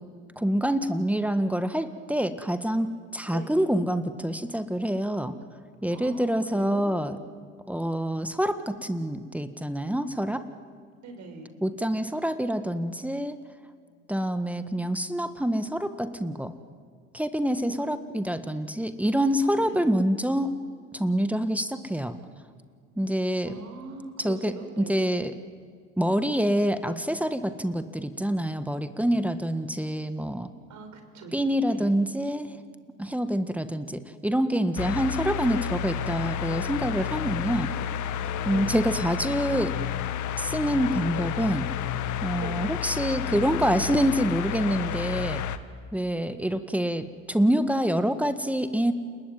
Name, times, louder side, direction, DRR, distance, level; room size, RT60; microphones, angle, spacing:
voice 1, 0.4-5.3 5.8-7.2 7.7-10.5 11.6-13.4 14.1-16.5 17.1-20.5 20.9-22.2 23.0-23.6 24.2-25.3 26.0-30.5 31.3-32.6 33.0-37.7 38.4-39.7 40.4-41.7 42.2-45.4 45.9-48.9, equal, 5° right, 10 dB, 1.6 m, -26 dB
voice 2, 3.3-3.6 5.9-6.9 11.0-11.5 17.6-18.0 19.6-19.9 23.5-25.0 30.7-31.4 31.7-31.9 38.4-38.8 42.3-42.6 43.5-44.0, right 4 dB, 55° right, 6 dB, 5.7 m, -42 dB
sound 1, 34.8-45.6, left 9 dB, 55° left, 1.6 m, -31 dB
29.5 x 20.5 x 9.2 m, 2.1 s
hypercardioid pair, 70°, 34 cm